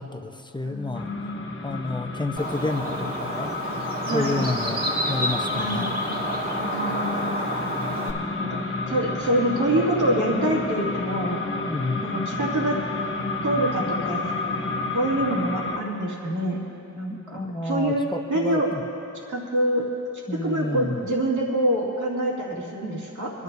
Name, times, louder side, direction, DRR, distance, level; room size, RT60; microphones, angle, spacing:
voice 1, 0.0-1.1 1.6-3.6 4.1-6.0 11.7-12.1 17.1-18.8 20.3-21.1, left 2 dB, 15° left, 5 dB, 0.8 m, -30 dB
voice 2, 0.6-1.5 4.1-4.5 5.5-5.9 6.6-7.3 8.1-11.4 12.0-12.8 13.4-14.2 14.9-16.6 16.9-18.7 19.3-19.8 20.4-23.4, right 1 dB, 70° right, -3 dB, 2.4 m, -26 dB
sound 1, 0.9-15.8, left 3 dB, 40° left, 1.2 m, -30 dB
Bird, 2.4-8.1, right 1 dB, 30° right, 2.1 m, -30 dB
24.0 x 12.0 x 2.7 m, 2.8 s
wide cardioid pair, 70°, 31 cm